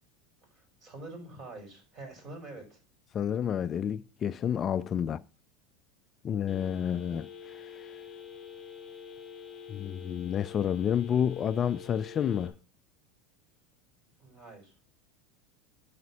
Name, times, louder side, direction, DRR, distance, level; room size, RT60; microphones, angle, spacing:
voice 1, 0.5-2.8 14.2-14.7, right 2 dB, 40° right, 5.6 m, -46 dB
voice 2, 3.1-5.2 6.2-7.7 9.7-12.5, left 8 dB, 35° left, 0.3 m, -30 dB
Telephone, 6.5-12.5, left 7 dB, 15° left, 1.8 m, -46 dB
9.4 x 5.0 x 6.2 m
hypercardioid pair, 100°, 0 cm